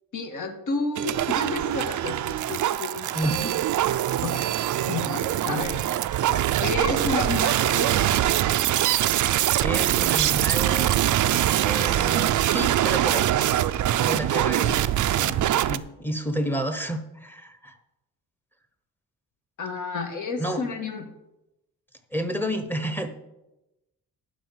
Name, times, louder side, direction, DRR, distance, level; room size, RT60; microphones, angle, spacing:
voice 1, 0.1-3.3 4.2-4.5 4.9-5.8 6.6-8.1 19.6-21.1, left 3 dB, 60° left, 4 dB, 1.8 m, -31 dB
sound 1, 1.0-15.8, right 12 dB, 60° right, 0.5 m, -23 dB
voice 2, 3.1-3.5 9.6-10.9 11.2-13.3 14.0-14.9 15.1-17.8 20.4-20.6 22.1-23.1, equal, 5° left, 8 dB, 1.0 m, -30 dB
11.0 x 5.3 x 7.4 m, 0.94 s
cardioid pair, 130°, 35 cm